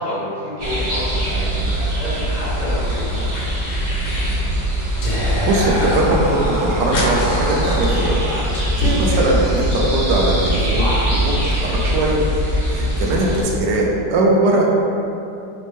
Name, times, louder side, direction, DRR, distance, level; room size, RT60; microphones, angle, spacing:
voice 1, 0.0-3.6 12.9-13.3, equal, 40° left, -12 dB, 0.6 m, -29 dB
sound 1, 0.6-13.4, equal, 55° right, 0.9 m, -22 dB
sound 2, 2.2-2.9 3.1-4.4 4.8-6.0 6.3-6.4 6.5-8.5, left 1 dB, 80° left, 1.4 m, -30 dB
Whispering, 5.0-11.5, equal, 65° left, 1.2 m, -25 dB
voice 2, 5.1-8.4 8.8-12.2 12.7-14.6, right 2 dB, 75° right, -2 dB, 1.1 m, -20 dB
4.3 x 2.1 x 3.1 m, 2.6 s
omnidirectional pair, 2.0 m